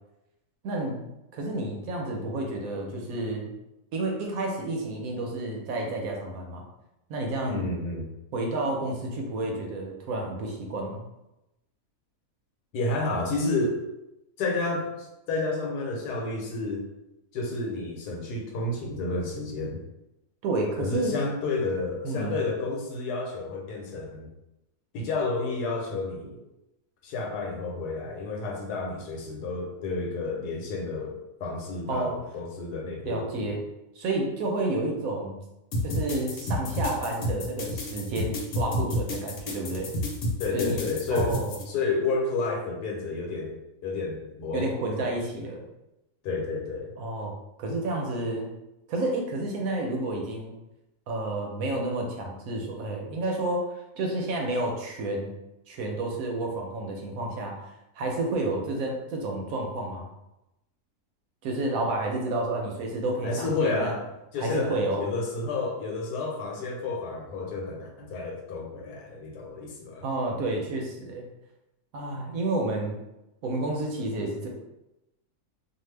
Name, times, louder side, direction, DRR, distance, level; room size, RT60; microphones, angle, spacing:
voice 1, 0.6-1.0 1.3-3.5 3.9-6.6 7.1-7.7 8.3-11.0 20.4-21.2 22.0-22.4 31.9-32.2 32.7-32.8 33.0-33.6 34.0-35.4 35.8-39.9 40.5-41.6 44.5-45.6 47.0-47.3 47.6-48.5 48.9-50.5 51.1-53.6 54.0-55.3 55.7-57.6 58.0-60.1 61.4-64.0 64.4-65.0 70.0-71.2 71.9-73.0 73.4-74.5, right 2 dB, 70° right, 1 dB, 0.9 m, -30 dB
voice 2, 7.5-8.0 12.7-13.8 14.4-16.8 17.3-19.8 20.8-24.3 24.9-26.4 27.0-33.6 40.4-41.4 41.7-43.5 43.8-45.4 46.2-46.9 63.2-70.1, left 3 dB, 90° left, 0 dB, 1.2 m, -31 dB
sound 1, 35.7-41.6, left 1 dB, 70° left, 1.2 m, -30 dB
2.6 x 2.3 x 3.2 m, 0.93 s
omnidirectional pair, 1.7 m